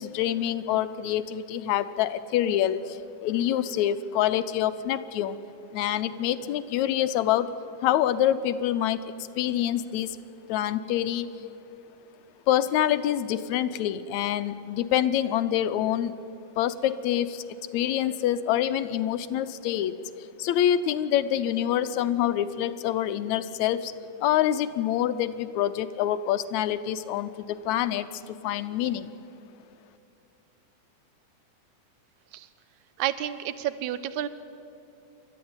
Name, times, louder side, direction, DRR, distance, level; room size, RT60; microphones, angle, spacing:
voice 1, 0.0-5.4 5.7-7.5 7.8-10.2 10.5-11.3 12.5-16.2 16.6-17.4 17.7-20.0 20.4-23.9 24.2-29.1, left 11 dB, 75° left, 12 dB, 1.9 m, -26 dB
voice 2, 33.0-34.3, right 11 dB, 75° right, 13 dB, 2.1 m, -30 dB
28.5 x 13.0 x 9.5 m, 2.6 s
omnidirectional pair, 3.6 m